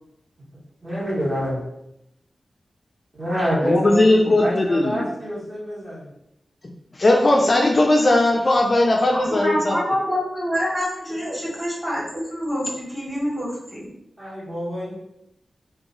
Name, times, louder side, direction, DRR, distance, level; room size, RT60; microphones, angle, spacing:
voice 1, 0.8-1.6 3.1-6.1 11.2-11.4 14.2-15.0, equal, 30° right, -7 dB, 1.4 m, -27 dB
voice 2, 3.6-5.1 7.0-9.8, left 2 dB, 35° left, 0 dB, 0.3 m, -18 dB
voice 3, 9.1-13.9, equal, 5° right, -6 dB, 1.4 m, -26 dB
2.9 x 2.3 x 3.8 m, 0.81 s
wide cardioid pair, 120°, 0 cm